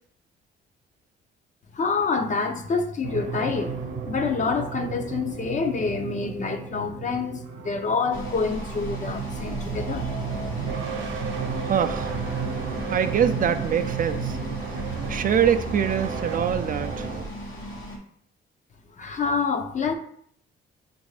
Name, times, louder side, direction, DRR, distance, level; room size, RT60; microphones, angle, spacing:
voice 1, 1.7-10.3 19.0-19.9, left 4 dB, 40° left, 0.6 m, -27 dB
sound 1, 3.0-17.2, right 5 dB, 70° right, 0.8 m, -33 dB
sound 2, 8.1-18.0, equal, 80° left, 1.1 m, -36 dB
voice 2, 11.7-12.1 12.9-14.4 15.1-17.1, right 8 dB, 45° right, 0.4 m, -24 dB
6.2 x 2.5 x 3.2 m
cardioid pair, 90°, 20 cm